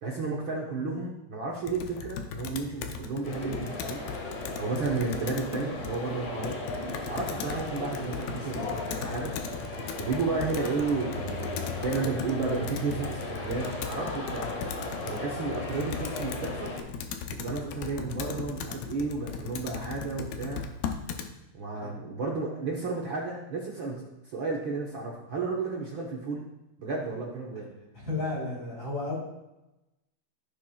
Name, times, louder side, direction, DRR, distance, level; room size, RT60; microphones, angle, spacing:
voice 1, 0.0-4.0 4.6-6.6 7.1-9.3 10.0-14.5 15.0-16.7 17.3-20.6 21.5-26.4 26.8-27.7, right 4 dB, 65° right, -3 dB, 1.2 m, -32 dB
Computer keyboard, 1.6-21.3, left 6 dB, 85° left, 2.5 m, -38 dB
sound 1, 3.2-16.8, left 2 dB, 55° left, 2.6 m, -37 dB
voice 2, 27.9-29.1, left 2 dB, 20° left, -6 dB, 3.8 m, -32 dB
16.0 x 6.9 x 2.3 m, 0.95 s
omnidirectional pair, 3.9 m